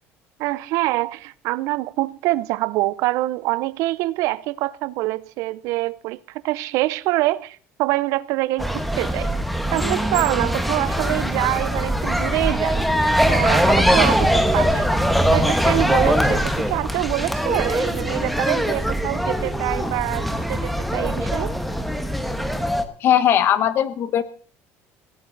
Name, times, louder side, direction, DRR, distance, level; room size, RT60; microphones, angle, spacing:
voice 1, 0.4-9.3 9.7-14.9 15.2-21.5, right 18 dB, 65° right, 0.7 m, -25 dB
sound 1, 8.6-22.8, equal, ahead, 1.3 m, -21 dB
voice 2, 23.0-24.2, left 10 dB, 40° left, 1.1 m, -18 dB
17.5 x 17.0 x 4.0 m
cardioid pair, 160°, 6 cm